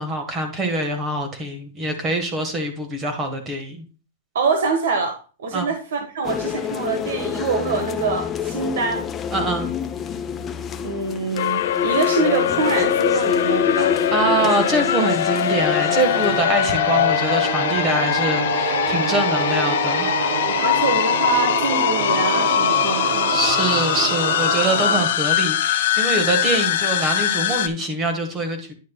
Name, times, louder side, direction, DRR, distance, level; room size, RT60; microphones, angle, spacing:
voice 1, 0.0-3.8 5.5-5.7 9.3-9.7 14.1-20.3 23.3-28.7, right 2 dB, 20° right, 6 dB, 1.4 m, -24 dB
voice 2, 4.3-9.1 10.8-13.9 20.4-23.4, right 4 dB, 80° right, 5 dB, 1.4 m, -25 dB
sound 1, 6.2-16.4, left 7 dB, 15° left, 0.5 m, -27 dB
sound 2, 11.4-27.7, left 11 dB, 60° left, 0.7 m, -22 dB
sound 3, 15.1-25.1, right 9 dB, 50° right, 0.6 m, -28 dB
9.9 x 6.4 x 2.3 m, 0.35 s
supercardioid pair, 165°, 0 cm